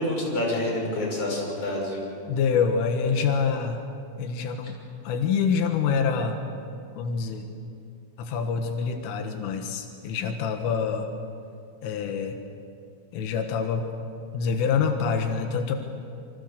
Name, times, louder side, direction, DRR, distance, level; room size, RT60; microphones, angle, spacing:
voice 1, 0.0-2.1, left 1 dB, 30° left, -1 dB, 6.9 m, -27 dB
voice 2, 2.3-3.8 4.2-4.8 5.0-6.4 7.0-7.5 8.2-11.1 11.8-12.4 13.1-13.8 14.3-15.8, left 6 dB, 90° left, 4 dB, 4.1 m, -26 dB
28.5 x 25.0 x 6.7 m, 2.5 s
omnidirectional pair, 5.6 m